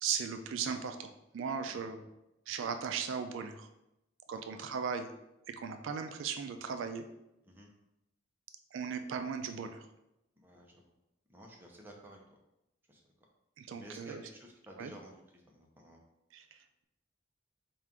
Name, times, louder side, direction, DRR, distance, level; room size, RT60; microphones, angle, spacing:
voice 1, 0.0-2.0 2.5-3.7 4.3-5.1 5.5-7.0 8.7-9.8 13.6-14.2 14.8-14.9 16.3-16.8, right 6 dB, 75° right, 7 dB, 0.3 m, -37 dB
voice 2, 10.4-10.9 11.3-12.4 12.9-13.1 13.8-16.0, equal, 10° right, 0 dB, 0.6 m, -54 dB
4.3 x 2.5 x 3.5 m, 0.88 s
head